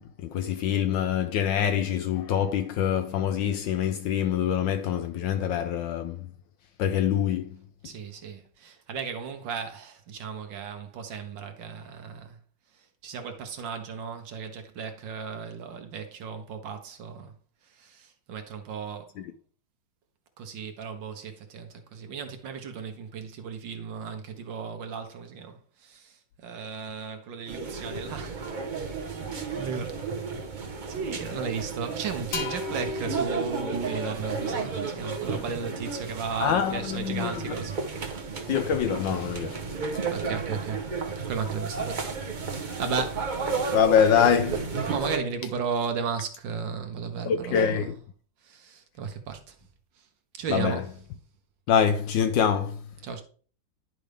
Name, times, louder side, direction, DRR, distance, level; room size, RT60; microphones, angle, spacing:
voice 1, 0.0-6.3 6.8-7.9 19.2-19.3 36.4-37.6 38.5-39.7 43.7-44.8 47.2-48.0 50.5-50.8 51.7-52.9, left 8 dB, 75° left, 1.1 m, -25 dB
voice 2, 7.8-12.4 13.0-17.3 17.7-19.1 20.4-28.4 28.7-29.0 29.5-30.0 30.9-37.7 38.2-38.3 40.1-40.9 41.2-42.1 42.5-43.3 44.9-47.9 48.4-49.5 50.4-50.8 53.0-53.2, right 6 dB, 65° right, 1.5 m, -35 dB
sound 1, 27.5-45.2, right 4 dB, 45° right, 0.6 m, -33 dB
sound 2, 32.3-36.0, left 3 dB, 60° left, 1.7 m, -38 dB
10.5 x 5.1 x 3.4 m
omnidirectional pair, 2.4 m